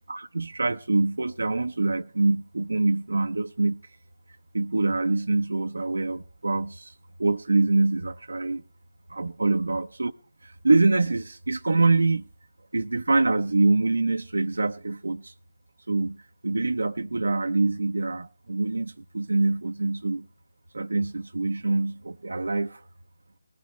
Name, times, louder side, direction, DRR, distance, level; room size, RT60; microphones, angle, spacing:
voice 1, 0.1-3.8 4.5-6.9 7.2-8.6 9.1-10.1 10.4-12.2 12.7-15.3 15.9-16.2 16.4-20.3 20.7-22.8, right 3 dB, 80° right, 0.6 m, -25 dB
19.5 x 14.5 x 3.1 m
figure-of-eight pair, 155°, 0 cm